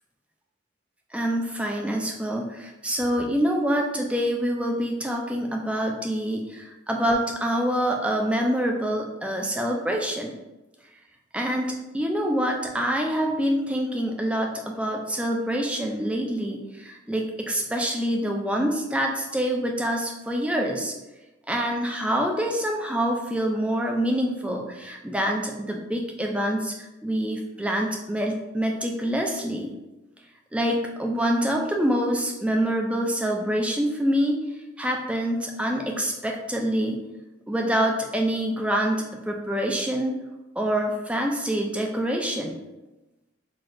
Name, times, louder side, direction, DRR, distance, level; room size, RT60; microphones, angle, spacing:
voice 1, 1.1-10.3 11.3-20.9 21.5-29.7 30.5-34.4 34.8-37.0 37.5-40.1 40.6-42.6, equal, 5° right, 1 dB, 0.3 m, -26 dB
5.9 x 2.4 x 2.5 m, 1.0 s
head